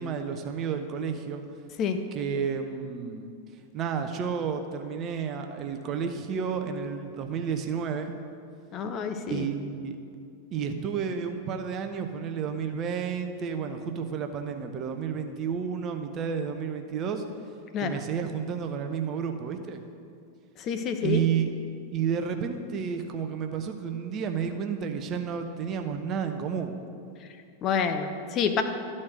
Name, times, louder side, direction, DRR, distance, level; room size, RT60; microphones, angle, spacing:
voice 1, 0.0-1.4 2.1-3.3 3.7-8.1 9.3-9.9 10.5-17.2 17.8-19.8 21.0-21.5 21.9-26.8, right 7 dB, 30° right, 6 dB, 0.8 m, -31 dB
voice 2, 8.7-9.5 17.7-18.0 20.6-21.2 27.6-28.6, left 6 dB, 35° left, 7 dB, 0.7 m, -28 dB
12.5 x 4.3 x 6.3 m, 2.4 s
figure-of-eight pair, 90°, 0 cm